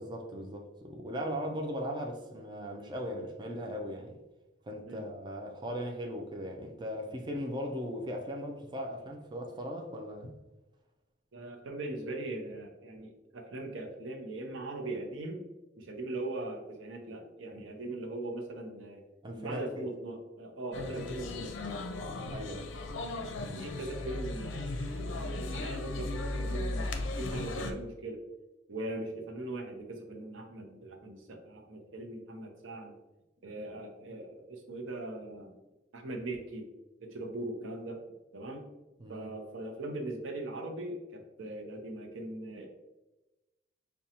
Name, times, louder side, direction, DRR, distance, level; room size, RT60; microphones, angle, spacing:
voice 1, 0.0-4.2 4.6-10.3 19.2-19.9 22.0-22.7 39.0-39.3, equal, 25° right, 0.4 m, -38 dB
voice 2, 11.3-15.4 15.8-19.0 19.4-21.5 23.5-26.9 27.2-28.2 28.7-32.9 33.4-35.5 35.9-36.6 37.0-38.0 38.3-38.6 39.1-42.7, right 2 dB, 80° right, 0.7 m, -40 dB
sound 1, 20.7-27.7, left 2 dB, 75° left, 0.5 m, -36 dB
4.9 x 2.2 x 2.8 m
head